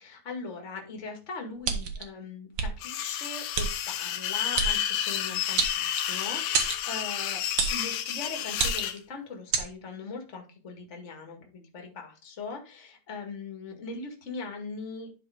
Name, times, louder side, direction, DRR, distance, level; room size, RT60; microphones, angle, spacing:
voice 1, 0.0-7.5 7.7-15.1, left 4 dB, 30° left, 3 dB, 1.8 m, -40 dB
sound 1, 1.6-2.0 2.5-2.7 3.5-3.7 4.5-4.7 5.6-6.2 6.5-6.8 7.6-7.8 8.5-9.0 9.5-9.7, right 6 dB, 55° right, 1.4 m, -27 dB
sound 2, 2.8-9.0, left 11 dB, 85° left, 2.2 m, -30 dB
11.0 x 5.0 x 3.5 m, 0.34 s
omnidirectional pair, 3.3 m